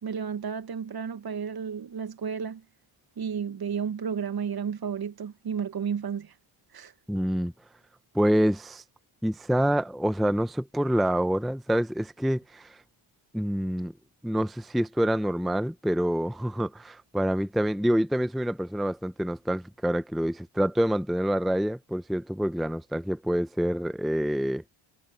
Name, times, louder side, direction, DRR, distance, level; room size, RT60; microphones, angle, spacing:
voice 1, 0.0-2.6 3.2-6.3 6.7-6.9, right 7 dB, 45° right, 1.4 m, -32 dB
voice 2, 7.1-7.5 8.1-8.8 9.2-12.8 13.3-13.9 14.2-24.6, equal, ahead, 0.6 m, -27 dB
cardioid pair, 100°, 49 cm